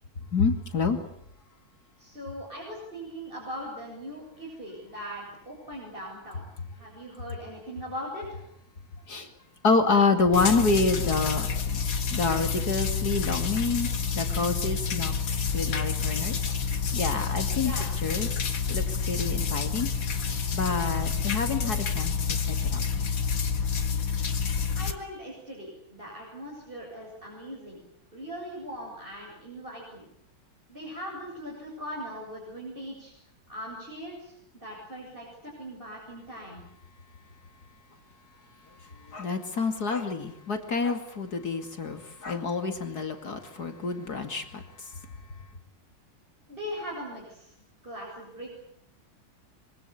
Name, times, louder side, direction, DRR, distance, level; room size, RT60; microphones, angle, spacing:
voice 1, 0.3-1.0 9.1-9.3 9.6-11.5 12.1-15.1 15.5-16.4 16.9-17.7 18.0-18.3 18.7-19.9 20.5-22.1 22.5-23.1 39.1-44.4, left 4 dB, 50° left, 7 dB, 2.8 m, -27 dB
voice 2, 2.0-6.4 6.7-8.4 17.6-17.9 24.7-27.8 28.1-30.0 30.7-33.1 33.5-36.6 46.5-47.5 47.8-48.5, equal, 25° right, -4 dB, 7.8 m, -40 dB
sound 1, 10.3-24.9, left 6 dB, 70° left, 2.6 m, -28 dB
25.5 x 25.0 x 8.5 m, 0.71 s
omnidirectional pair, 2.2 m